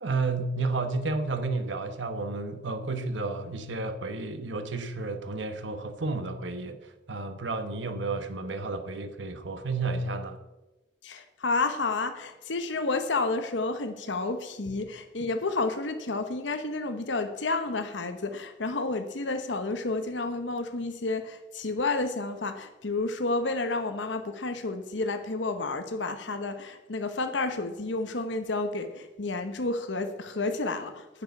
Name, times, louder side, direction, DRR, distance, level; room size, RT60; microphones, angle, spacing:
voice 1, 0.0-10.4, right 3 dB, 90° right, 1.2 m, -31 dB
voice 2, 11.0-31.2, left 3 dB, 85° left, 1.0 m, -30 dB
10.0 x 6.8 x 8.2 m
head